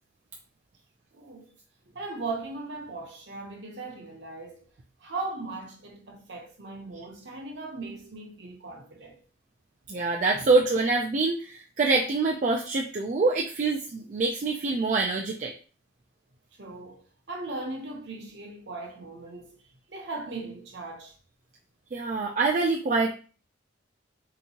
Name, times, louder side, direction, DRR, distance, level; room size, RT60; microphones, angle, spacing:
voice 1, 1.1-1.5 1.9-4.7 5.0-9.2 10.3-10.5 16.6-19.6 19.9-21.1, right 3 dB, 55° right, 0.8 m, -38 dB
voice 2, 9.9-15.5 21.9-23.1, right 3 dB, 40° right, 0.3 m, -25 dB
3.4 x 2.9 x 2.8 m
head